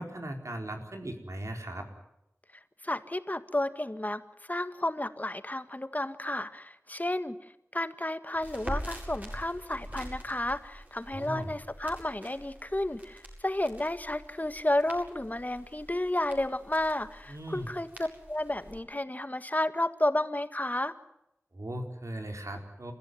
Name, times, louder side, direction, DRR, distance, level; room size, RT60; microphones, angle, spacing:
voice 1, 0.0-1.9 11.1-11.5 17.3-17.7 21.5-22.9, right 1 dB, 85° right, 3 dB, 4.3 m, -38 dB
voice 2, 2.8-4.2 4.5-7.3 7.7-20.9, left 1 dB, 35° left, 11 dB, 1.7 m, -32 dB
Crackle, 8.4-18.8, equal, 30° right, 8.0 m, -44 dB
30.0 x 14.5 x 9.3 m, 0.84 s
wide cardioid pair, 45°, 5 cm